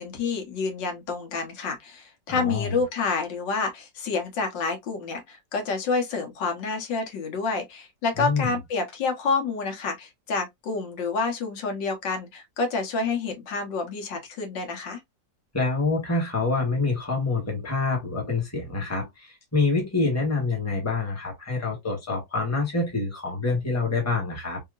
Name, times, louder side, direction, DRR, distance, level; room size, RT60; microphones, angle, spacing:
voice 1, 0.0-15.0, left 4 dB, 80° left, 1.8 m, -28 dB
voice 2, 2.3-2.7 8.2-8.5 15.5-24.6, left 3 dB, 10° left, 1.1 m, -26 dB
3.5 x 2.9 x 2.4 m
omnidirectional pair, 1.9 m